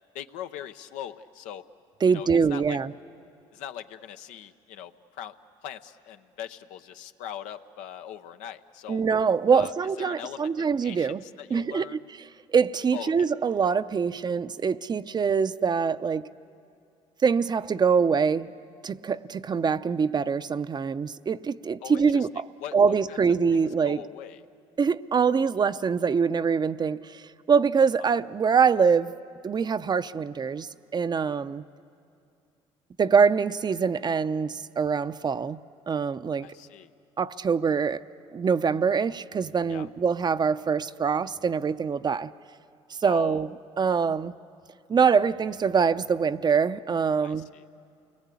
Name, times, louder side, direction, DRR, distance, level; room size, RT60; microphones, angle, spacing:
voice 1, 0.1-1.6 2.1-2.8 3.5-5.3 5.6-9.0 9.5-12.0 12.9-13.3 21.8-22.3 22.6-23.2 23.5-24.4 28.0-28.1 31.3-31.4 36.4-36.9 39.7-39.9 43.0-43.5 47.2-47.6, left 10 dB, 85° left, 0.7 m, -41 dB
voice 2, 2.0-2.9 8.9-11.2 11.5-12.0 12.5-16.3 17.2-18.5 18.8-22.5 22.7-24.0 24.8-29.1 29.4-31.6 33.0-35.6 35.9-36.5 37.2-38.0 38.3-42.3 43.0-43.5 43.8-44.3 44.9-47.5, right 6 dB, 35° right, 0.6 m, -24 dB
29.0 x 20.5 x 8.4 m
supercardioid pair, 75°, 13 cm